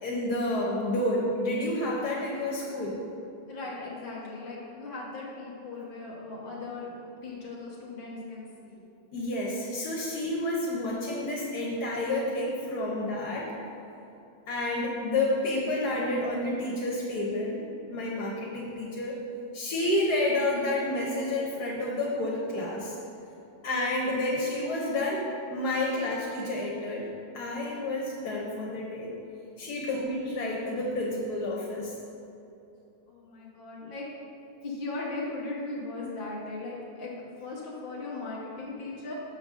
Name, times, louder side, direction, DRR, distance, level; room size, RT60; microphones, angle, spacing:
voice 1, 0.0-3.0 9.1-13.5 14.5-19.2 19.5-22.9 23.6-27.1 27.3-29.1 29.6-32.0, left 1 dB, 75° left, -3 dB, 1.4 m, -30 dB
voice 2, 3.5-6.9 7.2-8.8 29.9-30.1 33.1-34.1 34.6-39.1, left 3 dB, 40° left, -5 dB, 0.9 m, -38 dB
6.5 x 3.9 x 6.1 m, 2.9 s
omnidirectional pair, 1.7 m